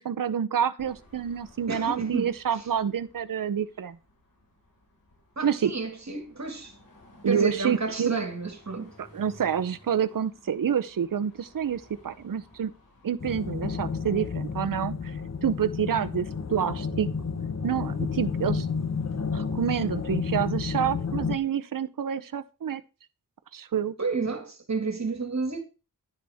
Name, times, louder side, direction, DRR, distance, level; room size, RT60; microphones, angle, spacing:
voice 1, 0.0-4.0 5.4-5.7 7.2-8.2 9.1-12.7 13.0-17.1 17.6-18.7 19.3-22.8 23.5-24.0, right 8 dB, 70° right, 0.7 m, -28 dB
Car passing by / Traffic noise roadway noise / Engine, 0.8-19.5, left 1 dB, 80° left, 5.0 m, -57 dB
voice 2, 1.7-2.6 5.4-6.8 7.3-8.9 24.0-25.6, right 4 dB, 50° right, 2.1 m, -31 dB
sound 1, 13.2-21.4, left 5 dB, 50° left, 1.3 m, -31 dB
11.0 x 10.5 x 3.6 m
wide cardioid pair, 70°, 34 cm